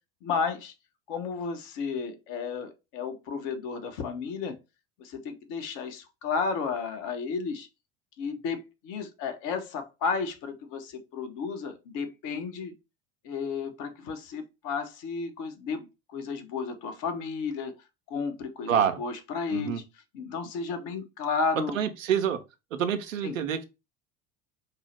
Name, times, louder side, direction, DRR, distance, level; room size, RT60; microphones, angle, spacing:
voice 1, 0.2-0.7 1.1-4.6 5.0-7.7 8.2-12.7 13.2-17.7 18.1-19.8 20.1-21.8 23.2-23.3, left 5 dB, 50° left, 0.9 m, -33 dB
voice 2, 18.7-19.0 19.5-19.8 21.5-22.4 22.7-23.7, right 8 dB, 80° right, 0.6 m, -27 dB
4.5 x 2.0 x 3.1 m
figure-of-eight pair, 70°, 38 cm